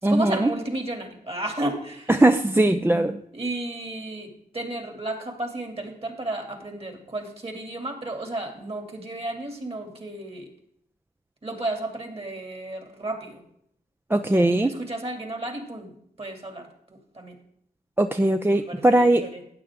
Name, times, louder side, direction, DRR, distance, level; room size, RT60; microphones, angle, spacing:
voice 1, 0.0-2.1 3.3-10.5 11.4-13.4 14.3-17.4 18.5-19.4, right 2 dB, 35° right, 4 dB, 2.7 m, -33 dB
voice 2, 2.2-3.2 14.1-14.7 18.0-19.2, right 1 dB, 15° right, 7 dB, 0.6 m, -19 dB
12.5 x 9.3 x 3.6 m, 0.70 s
cardioid pair, 60°, 16 cm